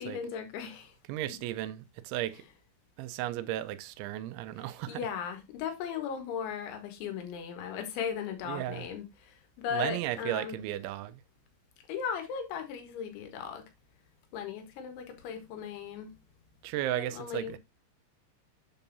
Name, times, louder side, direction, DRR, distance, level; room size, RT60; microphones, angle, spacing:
voice 1, 0.0-0.9 4.6-10.6 11.9-13.7 14.3-16.1 16.9-17.6, left 7 dB, 90° left, 3.9 m, -37 dB
voice 2, 1.1-2.4 3.0-5.0 8.5-8.8 9.7-11.2 16.6-17.6, right 13 dB, 90° right, 3.0 m, -35 dB
8.0 x 7.0 x 2.7 m
omnidirectional pair, 5.2 m